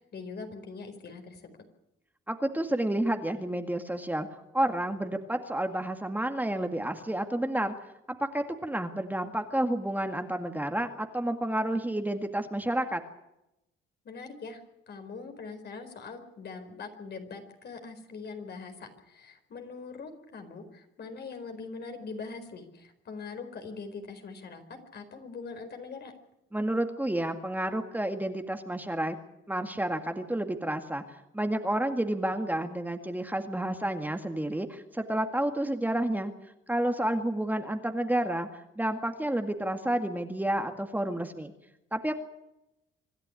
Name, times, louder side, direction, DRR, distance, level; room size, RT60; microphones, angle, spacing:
voice 1, 0.0-1.5 14.0-26.1, left 4 dB, 55° left, 6 dB, 4.5 m, -42 dB
voice 2, 2.3-4.3 4.5-7.7 8.3-13.0 26.5-29.2 29.5-31.0 31.3-36.3 36.7-41.5 41.9-42.1, right 1 dB, 10° right, 6 dB, 2.0 m, -30 dB
26.0 x 12.0 x 9.8 m, 0.88 s
cardioid pair, 90°, 20 cm